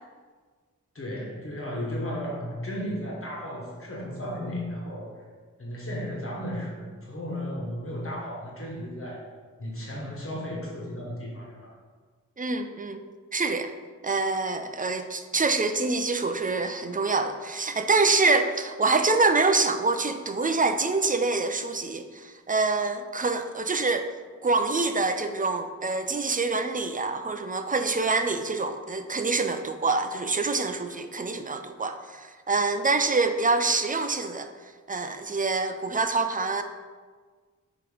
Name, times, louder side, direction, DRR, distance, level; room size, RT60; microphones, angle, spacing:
voice 1, 0.9-5.2 5.6-9.3 9.6-11.7, equal, 45° left, -3 dB, 1.4 m, -34 dB
voice 2, 12.4-13.0 13.3-13.7 14.0-24.1 24.4-34.5 34.9-36.6, right 3 dB, 25° right, 8 dB, 0.4 m, -26 dB
6.9 x 3.1 x 5.0 m, 1.5 s
wide cardioid pair, 85°, 31 cm